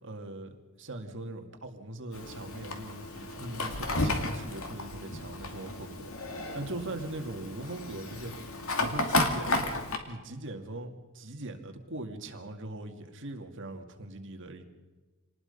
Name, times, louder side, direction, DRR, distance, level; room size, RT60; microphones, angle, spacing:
voice 1, 0.0-8.3 8.8-9.8 10.1-14.6, right 2 dB, 60° right, 5 dB, 2.2 m, -41 dB
Fire, 2.1-10.0, left 2 dB, 65° left, 2.4 m, -33 dB
27.0 x 19.5 x 5.5 m, 1.2 s
head